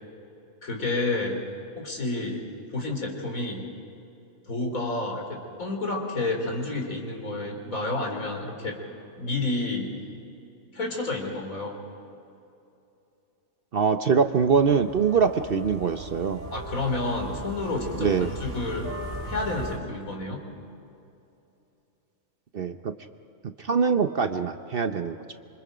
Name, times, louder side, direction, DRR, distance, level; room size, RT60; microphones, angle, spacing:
voice 1, 0.6-1.4 1.8-2.4 2.7-3.7 4.5-8.8 9.2-9.9 10.7-11.8 16.5-18.9 19.3-20.4, left 2 dB, 75° left, 2 dB, 3.8 m, -30 dB
voice 2, 13.7-16.5 18.0-18.3 22.5-22.9 23.6-25.2, right 6 dB, 50° right, 8 dB, 0.8 m, -23 dB
sound 1, 14.3-19.8, right 1 dB, 25° right, 3.9 m, -38 dB
27.0 x 25.0 x 5.1 m, 2.7 s
omnidirectional pair, 1.4 m